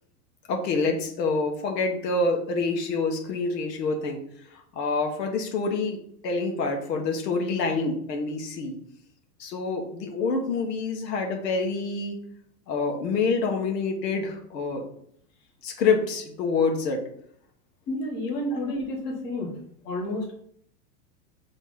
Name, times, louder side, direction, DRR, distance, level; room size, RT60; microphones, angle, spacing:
voice 1, 0.5-4.2 4.5-8.8 9.4-12.2 12.7-14.9 15.6-17.0, left 4 dB, 90° left, 2 dB, 1.5 m, -27 dB
voice 2, 17.9-19.5 19.8-20.3, left 1 dB, 30° left, -1 dB, 1.4 m, -30 dB
5.4 x 3.2 x 5.5 m, 0.67 s
supercardioid pair, 170°, 48 cm